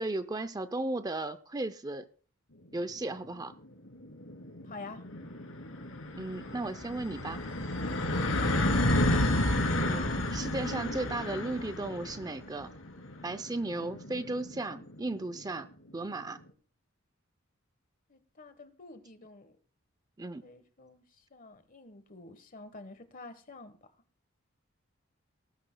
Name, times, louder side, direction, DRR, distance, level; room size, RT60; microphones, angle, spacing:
voice 1, 0.0-2.0 2.7-3.5 6.2-7.4 9.8-12.7 13.2-15.7 15.9-16.4 20.2-20.4, right 2 dB, 20° right, 0.5 m, -35 dB
sound 1, 3.1-3.2 3.5-3.6 3.9-15.3, left 1 dB, 75° left, 2.9 m, -31 dB
voice 2, 8.1-8.8 18.1-19.5 20.4-21.0 21.3-23.7, left 3 dB, 45° left, 1.3 m, -48 dB
19.5 x 12.5 x 2.2 m
head